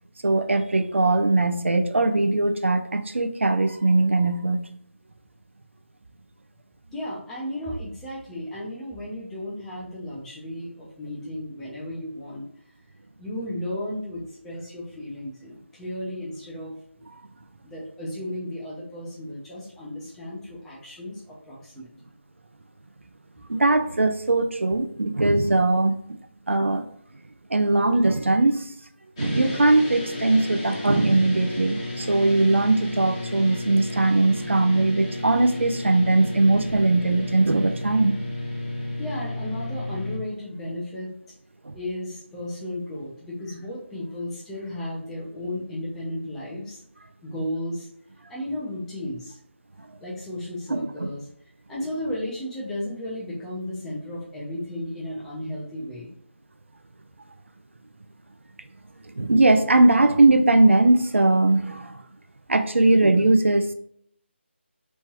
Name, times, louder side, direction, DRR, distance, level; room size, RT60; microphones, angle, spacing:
voice 1, 0.2-4.6 23.5-26.0 26.5-26.8 27.5-28.7 29.2-38.2 41.7-41.8 50.7-51.1 59.2-62.0 62.5-63.7, right 2 dB, 75° right, 0.5 m, -20 dB
voice 2, 6.9-12.4 13.2-16.7 17.6-21.9 39.0-41.1 41.7-46.8 47.2-47.9 48.3-49.4 50.0-51.2 51.7-56.1, left 1 dB, 5° left, 0.6 m, -34 dB
sound 1, 29.2-40.2, left 1 dB, 25° left, 0.9 m, -33 dB
3.3 x 3.1 x 2.9 m
figure-of-eight pair, 160°, 7 cm